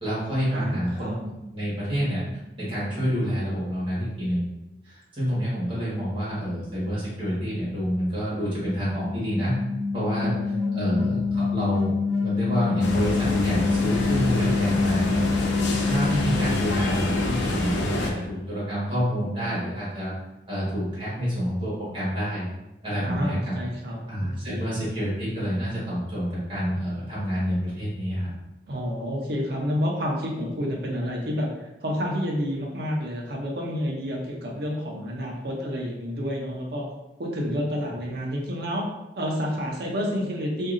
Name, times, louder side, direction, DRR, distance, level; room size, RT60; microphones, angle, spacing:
voice 1, 0.0-2.2 2.6-4.4 4.8-9.6 9.9-10.3 10.7-20.1 20.5-22.5 22.8-23.6 24.1-28.3, equal, 30° right, -9 dB, 1.4 m, -28 dB
voice 2, 0.5-1.2 10.2-11.2 23.0-24.7 28.7-36.8 37.2-38.8 39.2-40.7, equal, 60° right, -1 dB, 0.6 m, -29 dB
sound 1, 8.3-18.4, left 5 dB, 5° right, 0.5 m, -27 dB
sound 2, 12.8-18.1, left 1 dB, 80° left, 0.5 m, -28 dB
2.7 x 2.6 x 2.5 m, 0.95 s
head